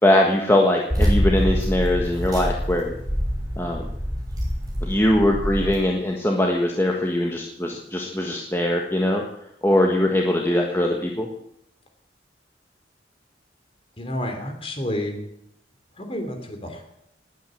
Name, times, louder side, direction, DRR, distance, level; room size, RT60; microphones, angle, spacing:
voice 1, 0.0-2.9 3.6-3.8 4.8-9.2 9.6-11.3, left 1 dB, 15° left, 0 dB, 1.5 m, -21 dB
sound 1, 0.9-5.7, equal, 20° right, 6.1 m, -25 dB
voice 2, 14.0-15.2 16.0-16.8, left 1 dB, 30° left, 5 dB, 3.1 m, -30 dB
19.5 x 9.4 x 7.7 m, 0.76 s
head